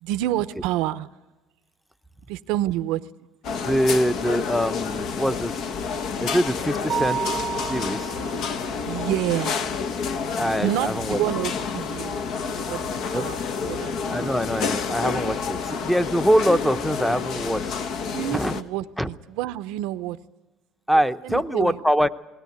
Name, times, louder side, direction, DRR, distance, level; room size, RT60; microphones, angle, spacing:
voice 1, 0.0-1.1 2.3-3.1 8.8-9.7 10.6-12.2 12.5-12.8 13.1-14.2 18.1-20.2 20.9-21.8, right 14 dB, 85° right, 12 dB, 0.7 m, -28 dB
sound 1, 3.4-18.6, left 5 dB, 60° left, 1.1 m, -29 dB
voice 2, 3.6-5.6 6.2-8.1 10.4-11.2 13.1-13.2 14.1-17.7 18.3-18.5 19.0-19.1 20.9-22.1, equal, ahead, 12 dB, 0.8 m, -24 dB
sound 2, 6.7-16.2, left 3 dB, 85° left, 3.3 m, -46 dB
Mallet percussion, 6.9-8.7, right 8 dB, 40° right, 0.7 m, -30 dB
20.0 x 18.0 x 9.4 m, 1.1 s
cardioid pair, 125°, 0 cm